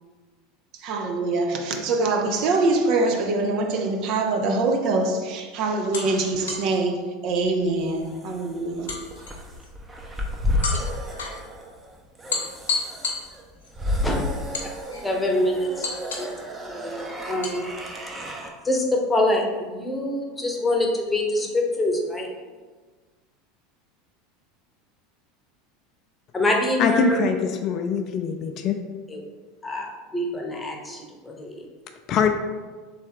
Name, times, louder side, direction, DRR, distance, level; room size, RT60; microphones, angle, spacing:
voice 1, 0.8-8.9, right 3 dB, 55° right, 3 dB, 0.6 m, -24 dB
sound 1, 4.6-4.9 5.9-6.8 8.9-9.7 10.6-11.4 12.3-13.7 14.5-15.2 15.8-16.4 17.4-17.6, left 4 dB, 75° left, 0.9 m, -31 dB
sound 2, 7.4-18.5, left 1 dB, 15° right, 0.7 m, -32 dB
voice 2, 15.0-15.9 16.2-16.3 16.7-17.8 18.6-22.3 26.3-27.2 29.1-29.2 29.6-31.7, left 1 dB, 15° left, 1 dB, 0.9 m, -25 dB
voice 3, 26.8-27.4 27.6-28.8 32.1-32.3, left 6 dB, 45° left, 5 dB, 0.4 m, -22 dB
3.4 x 3.3 x 4.6 m, 1.4 s
figure-of-eight pair, 80°, 0 cm